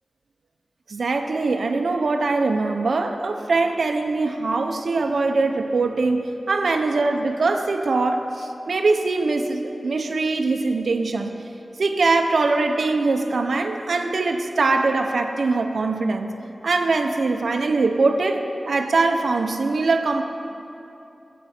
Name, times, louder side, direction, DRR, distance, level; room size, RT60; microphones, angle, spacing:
voice 1, 0.9-11.3 11.8-16.3 16.6-20.2, right 3 dB, 80° right, 4 dB, 0.8 m, -22 dB
21.0 x 8.3 x 4.4 m, 2.8 s
wide cardioid pair, 85°, 0 cm